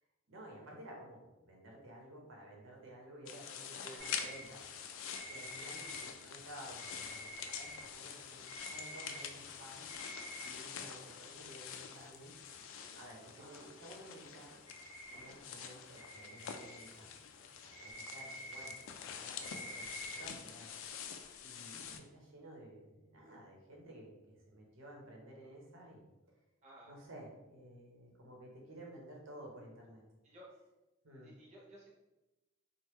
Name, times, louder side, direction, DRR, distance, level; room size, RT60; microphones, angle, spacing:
voice 1, 0.3-4.7 5.3-9.9 10.4-12.3 12.9-14.6 15.1-17.2 17.6-20.7 21.4-26.0 26.9-30.0 31.0-31.3, right 1 dB, 80° right, -1 dB, 0.9 m, -53 dB
sound 1, 3.3-22.0, left 7 dB, 75° left, 0.3 m, -47 dB
voice 2, 3.8-4.3 13.4-13.7 26.6-27.0 30.2-30.5 31.2-31.9, right 1 dB, 35° right, -4 dB, 0.5 m, -56 dB
sound 2, 4.0-10.8 11.1-11.2 11.4-11.5 11.8-12.1 12.5-12.6 12.8-13.3 13.5-14.4 14.7-15.7 16.0-20.3, right 1 dB, 15° right, 1.4 m, -49 dB
3.2 x 2.1 x 3.1 m, 1.0 s
head